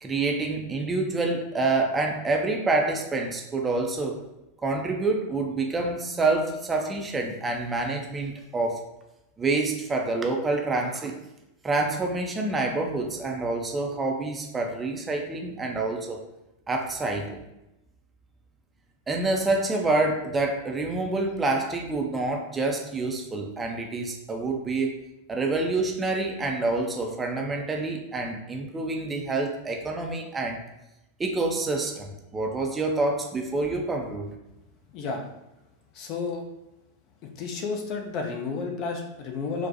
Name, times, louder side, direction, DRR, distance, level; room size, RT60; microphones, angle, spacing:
voice 1, 0.0-4.2 4.6-8.8 9.4-11.1 11.6-16.2 16.7-17.4 19.1-25.0 25.3-30.6 31.2-34.3, right 3 dB, 15° right, 2 dB, 0.5 m, -27 dB
voice 2, 35.9-36.4 37.4-39.7, left 4 dB, 40° left, 3 dB, 0.5 m, -31 dB
4.1 x 2.1 x 2.7 m, 0.92 s
figure-of-eight pair, 90°, 0 cm